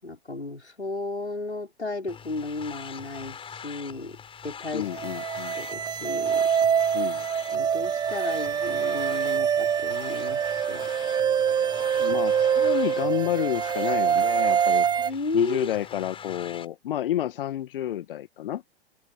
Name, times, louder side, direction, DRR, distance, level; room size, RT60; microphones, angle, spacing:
voice 1, 0.0-3.4 3.6-4.9 5.1-5.2 5.5-6.5 7.5-10.9 15.0-15.7, left 2 dB, 90° left, 5.5 m, -34 dB
sound 1, 2.1-16.7, left 7 dB, 15° left, 5.2 m, -43 dB
voice 2, 4.7-5.6 6.9-7.2 12.0-18.6, left 12 dB, 55° left, 1.6 m, -30 dB
sound 2, 4.9-15.1, right 8 dB, 15° right, 1.0 m, -25 dB
figure-of-eight pair, 110°, 32 cm